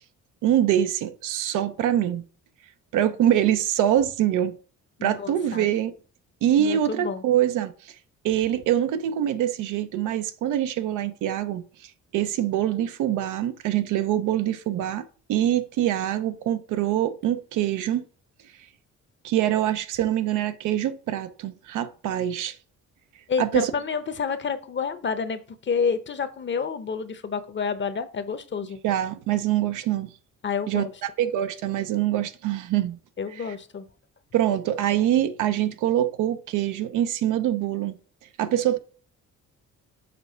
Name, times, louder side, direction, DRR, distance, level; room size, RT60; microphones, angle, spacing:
voice 1, 0.4-2.2 2.9-4.6 5.0-5.9 6.4-7.9 8.2-18.0 19.2-22.6 23.4-23.7 28.8-30.1 30.7-30.9 31.2-33.0 33.4-33.5 34.3-38.0 38.4-38.8, right 11 dB, 90° right, 0.7 m, -24 dB
voice 2, 5.0-5.7 6.6-7.2 23.3-28.8 30.4-30.8 33.2-33.9, left 6 dB, 40° left, 0.8 m, -29 dB
6.8 x 3.2 x 5.5 m
cardioid pair, 90°, 30 cm